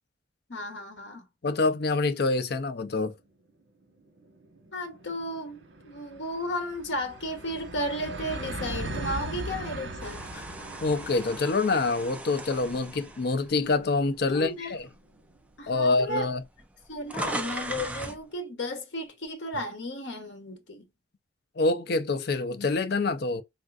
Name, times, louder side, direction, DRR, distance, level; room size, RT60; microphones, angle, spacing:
voice 1, 0.5-1.3 4.7-10.3 14.3-14.7 15.6-16.3 16.9-20.9, left 1 dB, 75° left, 0.9 m, -34 dB
voice 2, 1.4-3.1 10.8-14.9 15.7-16.4 21.6-23.4, left 3 dB, 55° left, 0.5 m, -26 dB
sound 1, 3.5-3.6 3.8-15.3, right 2 dB, 85° right, 1.1 m, -40 dB
sound 2, 10.0-14.3 14.8-15.0 15.9-16.0 16.2-18.2, right 1 dB, 5° right, 0.3 m, -38 dB
3.6 x 2.5 x 2.3 m
head